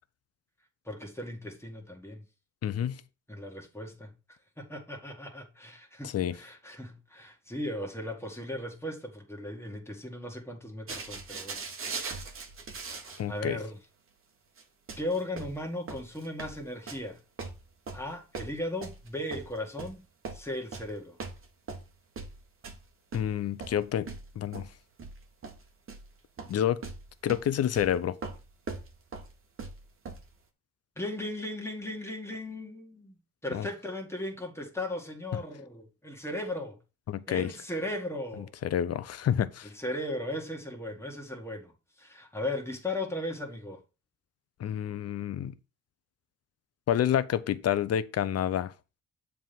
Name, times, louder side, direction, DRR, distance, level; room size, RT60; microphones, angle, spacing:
voice 1, 0.9-2.2 3.3-4.1 4.6-11.6 12.0-12.3 13.3-13.8 15.0-17.2 17.9-20.0 20.3-21.2 31.0-36.8 37.3-38.5 39.6-41.7 42.0-43.8, left 1 dB, 10° left, 2.0 m, -37 dB
voice 2, 2.6-3.0 6.0-6.4 13.2-13.6 23.1-24.1 24.4-24.7 26.5-26.8 27.2-28.2 33.5-33.7 37.1-37.5 38.4-39.7 44.6-45.5 46.9-48.7, left 10 dB, 55° left, 0.7 m, -29 dB
sound 1, 10.9-13.3 13.6-13.7 14.6-14.7 14.9-17.1 17.4-20.0 20.2-20.9 21.2-22.8 23.1-26.1 26.4-26.6 26.8-30.3, right 4 dB, 45° right, 1.3 m, -41 dB
7.3 x 3.6 x 5.9 m
cardioid pair, 90°, 30 cm